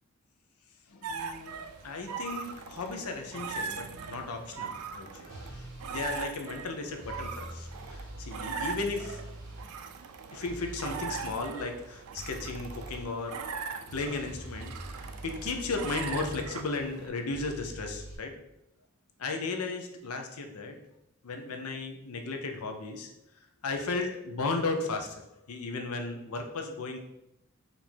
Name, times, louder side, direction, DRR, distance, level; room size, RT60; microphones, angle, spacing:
voice 1, 0.9-1.5 1.8-9.2 10.3-13.4 13.9-18.3 19.2-20.8 21.2-23.1 23.6-27.0, left 3 dB, 85° left, 4 dB, 0.7 m, -35 dB
sound 1, 1.0-17.1, right 5 dB, 90° right, 0.4 m, -40 dB
sound 2, 5.3-6.2 7.0-9.6 10.4-11.4 12.2-13.1 13.9-16.5 17.3-18.2, right 1 dB, 20° left, 1.3 m, -44 dB
4.4 x 2.6 x 4.4 m, 0.85 s
head